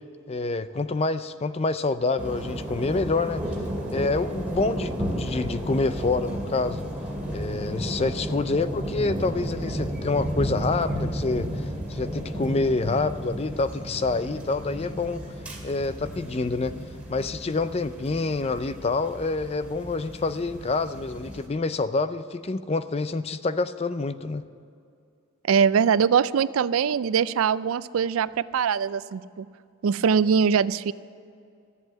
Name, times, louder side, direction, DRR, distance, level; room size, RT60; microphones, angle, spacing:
voice 1, 0.3-3.4 3.9-6.8 7.3-11.6 11.9-15.2 15.6-16.7 17.1-24.4, left 3 dB, 30° left, 13 dB, 0.4 m, -27 dB
sound 1, 2.2-21.5, equal, 5° right, 2.2 m, -33 dB
voice 2, 25.5-29.5 29.8-30.9, right 7 dB, 80° right, 17 dB, 0.4 m, -22 dB
14.0 x 8.0 x 8.9 m, 2.4 s
head